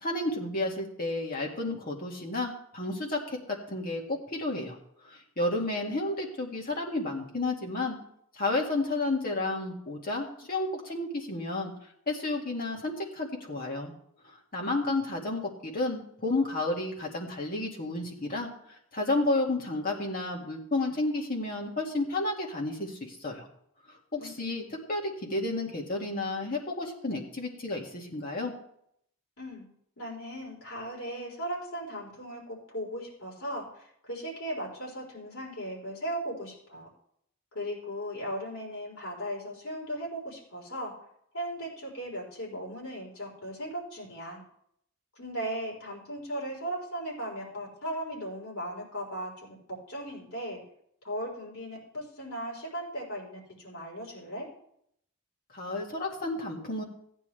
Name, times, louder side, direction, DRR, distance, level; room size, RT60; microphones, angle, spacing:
voice 1, 0.0-4.8 5.1-8.0 8.4-11.7 12.1-13.9 14.5-23.5 24.1-28.5 55.5-56.8, left 2 dB, 40° left, -1 dB, 2.2 m, -31 dB
voice 2, 24.2-24.6 29.4-29.7 30.0-36.9 37.5-40.9 41.3-44.4 45.2-50.6 51.0-54.5, equal, 70° left, -3 dB, 4.3 m, -37 dB
14.5 x 9.9 x 3.4 m, 0.70 s
head